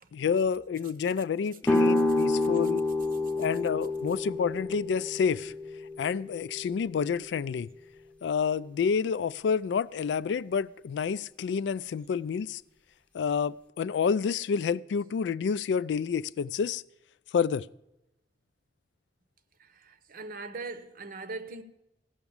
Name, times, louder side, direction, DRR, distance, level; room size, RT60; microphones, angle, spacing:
voice 1, 0.1-2.8 3.4-5.5 6.0-7.7 8.2-12.6 13.1-16.8 17.3-17.7, left 6 dB, 80° left, 0.3 m, -29 dB
sound 1, 1.6-7.4, left 2 dB, 10° left, 0.7 m, -29 dB
voice 2, 19.6-21.6, right 3 dB, 55° right, 0.8 m, -40 dB
15.5 x 6.0 x 7.0 m
head